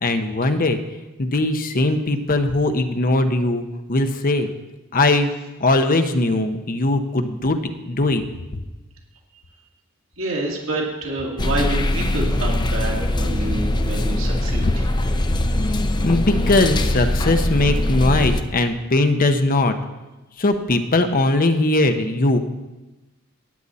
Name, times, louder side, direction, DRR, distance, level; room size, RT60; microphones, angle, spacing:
voice 1, 0.0-0.8 1.2-4.5 4.9-5.3 5.6-8.2 13.4-13.6 14.6-14.7 16.0-19.7 20.4-22.4, left 2 dB, 40° left, 7 dB, 0.8 m, -20 dB
voice 2, 10.2-14.9, right 1 dB, 65° right, -2 dB, 2.5 m, -27 dB
sound 1, 11.4-18.4, left 1 dB, 20° left, 0.5 m, -21 dB
13.5 x 9.9 x 4.2 m, 1.1 s
head